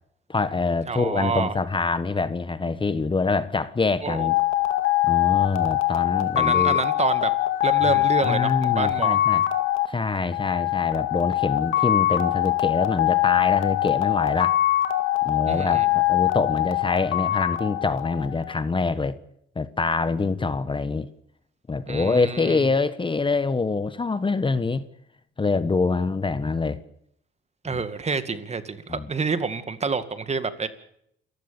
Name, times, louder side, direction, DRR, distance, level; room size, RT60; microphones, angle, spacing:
voice 1, 0.3-4.4 5.0-6.8 7.9-9.4 9.9-14.6 15.2-19.2 19.5-21.1 21.7-24.8 25.4-26.8 27.7-27.8 28.9-29.1, left 4 dB, 25° left, 1.3 m, -25 dB
voice 2, 0.9-1.5 4.0-4.3 6.4-7.3 7.6-9.2 15.5-15.9 21.9-22.7 27.6-30.7, right 4 dB, 35° right, 2.2 m, -28 dB
sound 1, 4.1-18.6, left 15 dB, 90° left, 2.2 m, -23 dB
28.5 x 15.5 x 7.1 m
cardioid pair, 90°, 20 cm